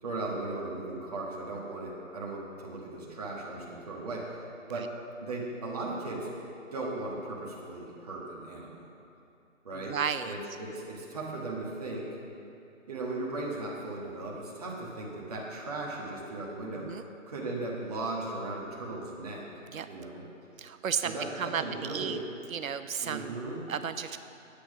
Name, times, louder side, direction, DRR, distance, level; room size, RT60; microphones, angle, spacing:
voice 1, 0.0-4.3 4.7-4.9 5.2-6.3 6.7-8.9 9.6-10.0 10.2-12.1 12.9-16.9 17.3-19.5 19.9-20.2 21.0-22.2 23.0-23.6, right 2 dB, 30° right, -4 dB, 1.7 m, -37 dB
voice 2, 9.7-10.4 16.8-17.0 19.7-19.9 20.6-22.2 22.5-23.4 23.7-24.2, right 7 dB, 85° right, 10 dB, 0.6 m, -33 dB
10.0 x 8.9 x 5.0 m, 2.7 s
hypercardioid pair, 170°, 40 cm